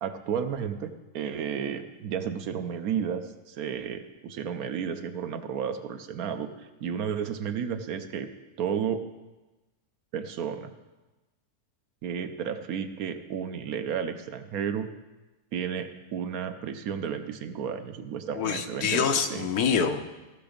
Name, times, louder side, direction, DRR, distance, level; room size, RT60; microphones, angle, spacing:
voice 1, 0.0-8.3 8.6-9.0 10.1-10.7 12.0-14.9 15.5-19.5, right 7 dB, 75° right, 8 dB, 1.2 m, -32 dB
voice 2, 18.3-20.2, left 6 dB, 85° left, 6 dB, 1.4 m, -26 dB
15.5 x 5.9 x 5.1 m, 1.1 s
omnidirectional pair, 1.6 m